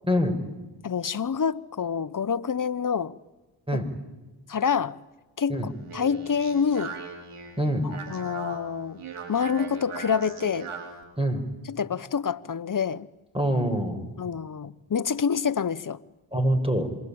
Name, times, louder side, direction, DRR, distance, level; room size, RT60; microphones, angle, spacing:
voice 1, 0.1-0.4 3.7-3.9 5.5-5.7 7.6-7.9 11.2-11.4 13.3-14.1 16.3-16.9, equal, 10° right, 5.8 m, -24 dB
voice 2, 0.8-3.1 3.7-3.8 4.5-5.0 5.4-7.0 7.8-9.0 9.3-10.7 11.7-13.1 14.2-16.0, left 6 dB, 40° left, 1.1 m, -27 dB
Speech, 5.6-11.0, right 5 dB, 85° right, 4.9 m, -40 dB
27.0 x 22.5 x 8.8 m
supercardioid pair, 45°, 49 cm